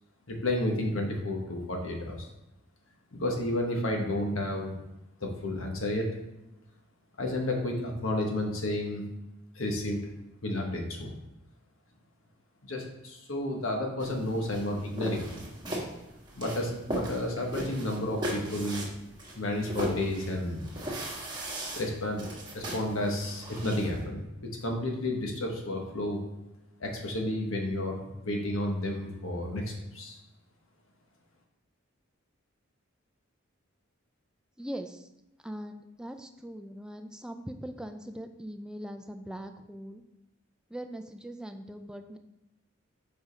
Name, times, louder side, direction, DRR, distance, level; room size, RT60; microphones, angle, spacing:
voice 1, 0.3-2.3 3.1-4.8 5.2-6.1 7.2-9.0 9.5-10.0 10.4-11.1 12.6-15.4 16.3-18.9 19.3-20.7 21.7-22.2 22.5-26.2 26.8-30.2, left 1 dB, 75° left, 1 dB, 1.2 m, -31 dB
sound 1, 14.0-24.0, equal, 20° right, 1.4 m, -38 dB
voice 2, 34.6-35.1 35.4-40.0 40.7-42.2, equal, 5° right, 6 dB, 0.4 m, -41 dB
5.2 x 5.0 x 3.9 m, 0.94 s
head